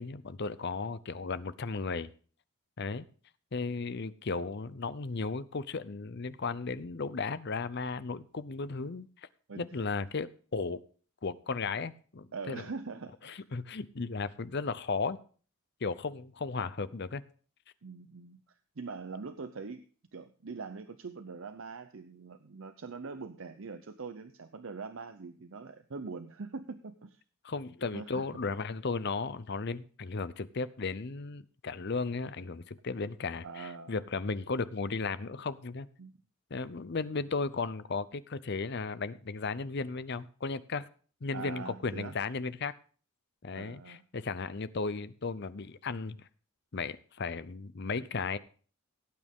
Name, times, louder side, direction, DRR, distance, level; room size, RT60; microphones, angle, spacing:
voice 1, 0.0-2.1 2.8-3.0 3.5-9.1 9.6-10.8 11.2-12.6 13.2-15.2 15.8-17.2 27.4-35.9 36.5-40.9 41.2-42.7 43.4-46.3 46.7-48.4, left 4 dB, 50° left, 15 dB, 0.6 m, -35 dB
voice 2, 12.3-13.4 17.8-19.8 20.1-27.2 27.9-28.2 33.4-33.9 36.0-36.1 41.3-42.1 43.5-44.0, right 4 dB, 65° right, 10 dB, 0.7 m, -43 dB
17.0 x 8.7 x 3.7 m, 0.42 s
head